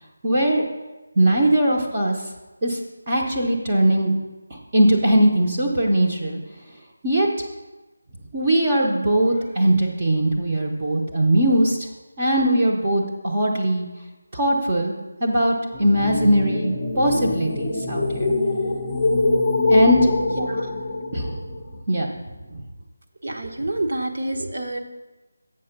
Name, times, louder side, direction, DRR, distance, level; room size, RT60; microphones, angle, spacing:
voice 1, 0.2-0.7 1.2-2.2 2.6-2.8 3.1-4.1 4.5-6.4 7.0-7.3 8.3-11.8 12.2-13.9 14.3-14.9 15.2-18.3 19.7-20.1 21.1-21.4 21.9-22.1, right 1 dB, 20° right, -2 dB, 0.8 m, -20 dB
sound 1, 15.7-21.7, left 2 dB, 10° left, 0.7 m, -23 dB
voice 2, 23.2-24.8, right 2 dB, 55° right, 2 dB, 1.0 m, -27 dB
7.6 x 6.0 x 5.9 m, 1.1 s
figure-of-eight pair, 175°, 0 cm